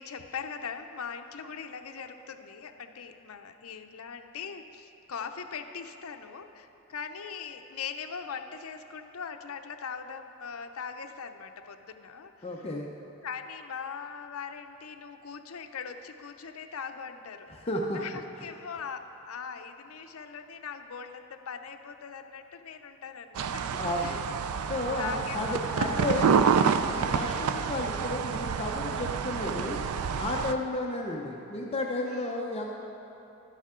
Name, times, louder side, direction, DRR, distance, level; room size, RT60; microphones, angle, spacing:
voice 1, 0.0-12.7 13.2-17.5 17.9-24.2 24.9-25.6 26.0-26.3 28.9-29.2 30.4-30.9 32.1-32.5, left 6 dB, 75° left, 7 dB, 0.6 m, -41 dB
voice 2, 12.4-12.9 17.5-18.0 23.8-24.2 24.7-26.3 26.9-29.8 30.2-32.7, left 2 dB, 30° left, -1 dB, 0.6 m, -32 dB
sound 1, 23.4-30.5, right 6 dB, 85° right, 0.4 m, -28 dB
12.0 x 9.9 x 3.7 m, 2.8 s
head